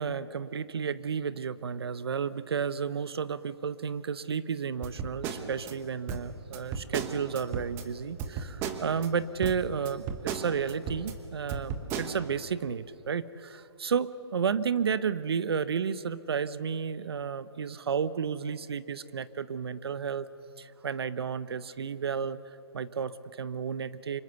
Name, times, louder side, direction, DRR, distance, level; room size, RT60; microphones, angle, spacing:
voice 1, 0.0-20.3 20.6-22.4 22.7-24.2, right 6 dB, 65° right, 16 dB, 0.8 m, -32 dB
sound 1, 4.8-5.7 6.1-7.9 8.2-9.1 9.4-11.1 11.5-12.1, right 6 dB, 15° right, 1.2 m, -35 dB
25.5 x 22.0 x 7.0 m, 2.8 s
hypercardioid pair, 160°, 14 cm